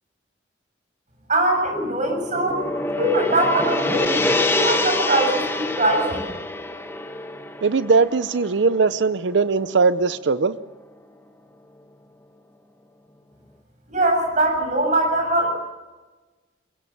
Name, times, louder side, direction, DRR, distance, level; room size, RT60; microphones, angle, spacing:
voice 1, 1.3-2.7 3.0-6.3 13.9-15.5, right 1 dB, 45° right, 3 dB, 7.4 m, -22 dB
Gong, 1.7-10.0, left 2 dB, 15° left, 1.4 m, -26 dB
voice 2, 7.6-10.6, right 4 dB, 90° right, 14 dB, 0.7 m, -20 dB
23.0 x 21.5 x 7.2 m, 1.2 s
head